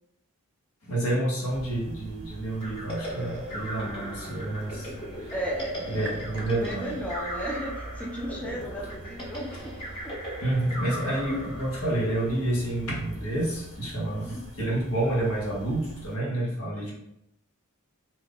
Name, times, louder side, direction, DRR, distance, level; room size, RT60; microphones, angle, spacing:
voice 1, 0.8-5.3 5.8-6.9 10.4-16.9, right 1 dB, 80° left, -4 dB, 1.2 m, -29 dB
sound 1, 1.5-16.2, right 1 dB, 50° right, 0.7 m, -44 dB
sound 2, 2.6-13.2, equal, 25° left, 0.8 m, -38 dB
voice 2, 5.3-5.9 6.6-9.7 10.0-10.1 14.1-14.4 16.7-16.9, equal, 5° left, -3 dB, 0.4 m, -34 dB
2.8 x 2.4 x 3.5 m, 0.80 s
head